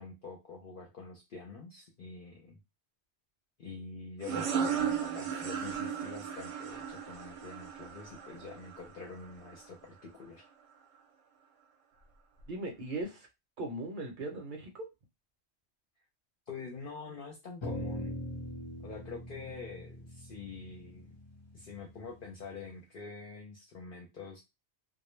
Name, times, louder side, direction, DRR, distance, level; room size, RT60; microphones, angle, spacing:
voice 1, 0.0-2.6 3.6-10.5 16.5-18.2 18.8-21.1 21.5-24.4, left 4 dB, 60° left, -1 dB, 0.7 m, -46 dB
sound 1, 4.2-9.6, right 7 dB, 85° right, 0.9 m, -35 dB
voice 2, 12.5-13.3 13.6-14.9, right 2 dB, 55° right, 2 dB, 0.8 m, -38 dB
sound 2, 17.6-22.1, left 1 dB, 30° left, 0.8 m, -41 dB
2.1 x 2.1 x 3.0 m, 0.23 s
omnidirectional pair, 1.1 m